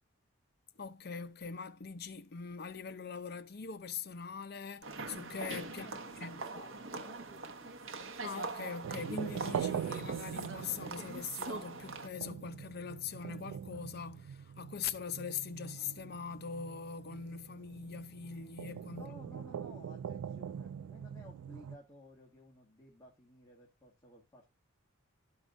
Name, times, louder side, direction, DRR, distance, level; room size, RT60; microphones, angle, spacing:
voice 1, 0.8-5.9 6.2-6.4 8.2-19.1 19.6-19.7, left 6 dB, 45° left, 0.6 m, -42 dB
sound 1, 4.8-12.1, right 3 dB, 65° right, 0.9 m, -43 dB
voice 2, 5.7-7.9 18.9-24.5, left 1 dB, 15° left, 1.5 m, -56 dB
sound 2, 8.8-21.8, right 8 dB, 90° right, 0.3 m, -43 dB
13.0 x 4.8 x 2.6 m
head